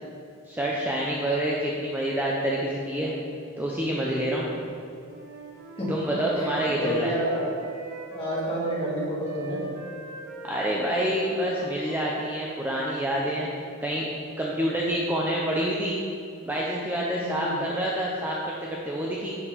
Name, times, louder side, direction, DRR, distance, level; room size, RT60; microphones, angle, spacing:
voice 1, 0.5-3.1 3.6-4.5 5.9-7.1 10.4-13.5 13.8-14.1 14.4-16.0 16.4-19.4, right 1 dB, 10° right, -4 dB, 0.6 m, -27 dB
Wind instrument woodwind instrument, 5.0-8.9 9.2-13.5, right 3 dB, 85° right, 1.2 m, -42 dB
voice 2, 6.4-7.5 8.1-9.7 17.2-17.6, equal, 25° left, -7 dB, 2.3 m, -30 dB
7.2 x 6.9 x 5.1 m, 2.5 s
head